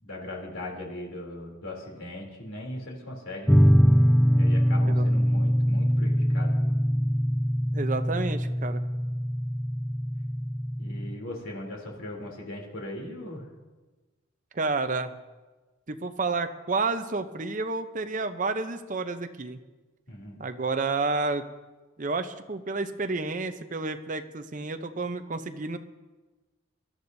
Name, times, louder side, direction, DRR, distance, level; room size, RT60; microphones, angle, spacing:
voice 1, 0.0-3.6 4.3-6.5 10.8-13.5 20.1-20.4, left 1 dB, 85° left, -1 dB, 3.2 m, -39 dB
sound 1, 3.5-11.1, equal, ahead, 0.3 m, -23 dB
voice 2, 7.7-8.8 14.5-15.2 15.9-19.6 20.4-21.5 22.0-25.8, right 3 dB, 40° right, 8 dB, 0.7 m, -30 dB
23.0 x 12.0 x 2.7 m, 1.2 s
head